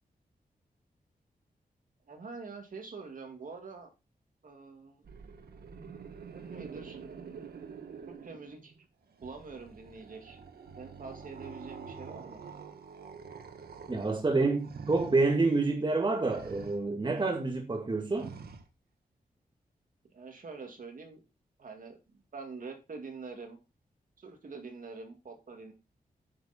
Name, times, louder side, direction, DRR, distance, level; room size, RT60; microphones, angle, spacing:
voice 1, 2.1-3.9 4.4-5.1 6.3-7.0 8.1-8.7 9.2-10.4 10.7-12.4 20.1-21.2 21.6-22.0 22.3-23.6 24.2-25.7, right 4 dB, 60° right, 2.4 m, -45 dB
sound 1, 5.0-8.8 9.1-15.2 16.2-16.8 18.1-18.6, right 5 dB, 90° right, 1.4 m, -47 dB
voice 2, 13.9-18.3, right 3 dB, 30° right, 2.1 m, -28 dB
9.3 x 6.5 x 4.4 m
wide cardioid pair, 105°, 16 cm